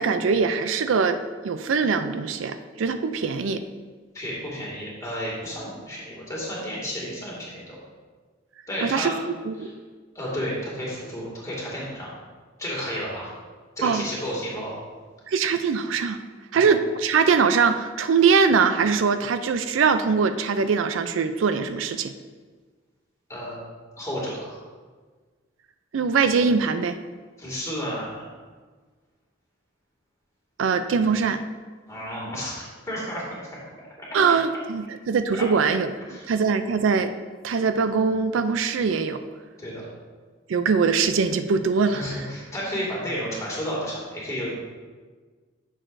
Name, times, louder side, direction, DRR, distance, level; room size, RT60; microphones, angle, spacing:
voice 1, 0.0-3.6 8.8-9.2 9.5-9.7 13.8-14.1 15.3-16.2 16.5-22.1 25.9-27.0 30.6-31.4 34.1-35.9 36.3-37.1 37.4-39.2 40.5-42.0, right 5 dB, 80° right, 10 dB, 0.4 m, -22 dB
voice 2, 4.1-7.8 8.7-9.1 9.6-9.7 10.1-12.1 12.6-13.3 13.8-14.8 16.5-16.7 23.3-23.6 24.0-24.6 27.4-28.3 31.9-33.2 34.0-34.1 35.4-35.5 36.1-36.3 39.6-39.9 41.8-44.6, equal, 15° left, -5 dB, 2.2 m, -32 dB
9.9 x 6.5 x 2.6 m, 1.4 s
head